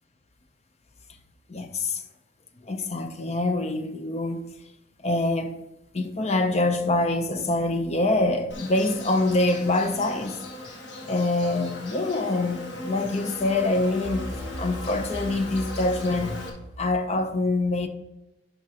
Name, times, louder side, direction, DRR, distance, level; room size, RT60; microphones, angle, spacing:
voice 1, 1.5-2.0 2.6-4.5 5.0-5.6 5.9-10.4 11.0-14.3 14.6-16.4 16.8-17.9, left 2 dB, 35° left, 0.7 m, -25 dB
sound 1, 6.7-7.6 14.0-17.1, equal, 10° right, 2.4 m, -39 dB
Insect, 8.5-16.5, left 1 dB, 70° left, 1.4 m, -39 dB
11.0 x 5.2 x 2.9 m
head